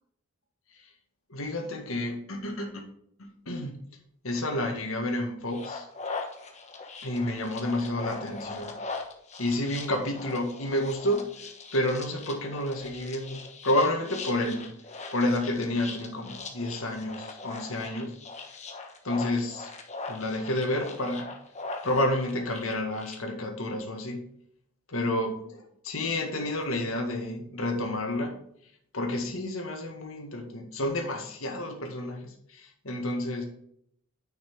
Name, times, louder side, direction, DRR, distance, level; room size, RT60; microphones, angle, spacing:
voice 1, 1.3-2.8 3.2-3.7 4.2-5.9 7.0-8.7 9.4-14.7 15.1-18.2 19.0-19.7 20.1-21.3 21.8-24.2 24.9-28.4 28.9-33.4, left 1 dB, 65° left, 3 dB, 1.9 m, -30 dB
sound 1, 5.5-23.2, left 3 dB, 30° left, 1.2 m, -41 dB
9.7 x 5.8 x 3.8 m, 0.69 s
head